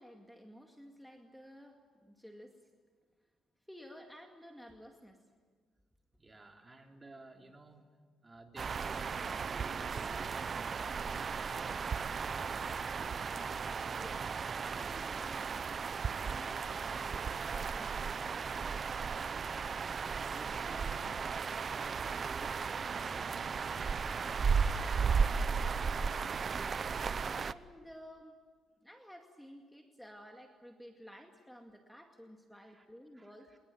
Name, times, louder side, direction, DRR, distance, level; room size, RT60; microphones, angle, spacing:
voice 1, 0.0-2.7 3.7-5.2 13.9-14.3 14.6-15.7 16.2-18.8 26.4-28.4 28.8-33.5, equal, 5° left, 3 dB, 2.2 m, -53 dB
voice 2, 6.1-7.9 8.2-11.9 19.8-24.5 32.7-32.9 33.1-33.6, right 2 dB, 25° right, 3 dB, 3.7 m, -54 dB
sound 1, 8.6-27.5, right 5 dB, 45° right, 0.8 m, -35 dB
25.5 x 21.5 x 9.3 m, 1.5 s
cardioid pair, 90°, 0 cm